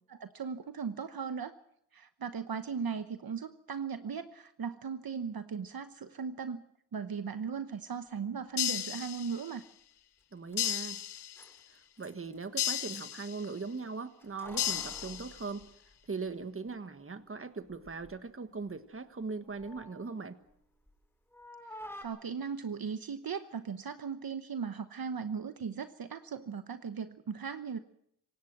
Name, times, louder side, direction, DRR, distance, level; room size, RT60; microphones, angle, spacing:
voice 1, 0.1-1.5 1.9-6.6 6.9-9.7 22.0-27.8, right 6 dB, 60° right, 10 dB, 1.1 m, -38 dB
sound 1, 8.6-9.6 10.6-11.6 12.6-13.6 14.6-15.6, left 10 dB, 75° left, 0.9 m, -35 dB
Keys jangling, 10.2-10.3 10.5-10.6 11.2-13.3 14.2-16.4 16.7-16.8 17.6-18.2 18.5-21.0 21.3-22.0, left 1 dB, 5° left, 6.6 m, -51 dB
voice 2, 10.3-11.0 11.7-15.7 16.1-20.4, right 4 dB, 30° right, 10 dB, 1.6 m, -40 dB
26.5 x 17.0 x 6.1 m, 0.73 s
wide cardioid pair, 90°, 40 cm